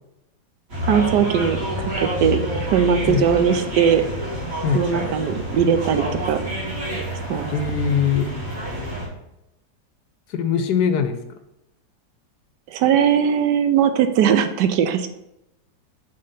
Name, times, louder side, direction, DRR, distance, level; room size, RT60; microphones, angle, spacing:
sound 1, 0.7-9.1, equal, 45° right, 2.6 m, -28 dB
voice 1, 0.8-4.0 4.7-6.4 7.3-7.5 12.7-15.1, right 8 dB, 75° right, 8 dB, 1.2 m, -19 dB
voice 2, 7.5-8.4 10.3-11.2, left 7 dB, 75° left, 9 dB, 1.1 m, -21 dB
6.7 x 3.4 x 5.5 m, 0.87 s
omnidirectional pair, 2.0 m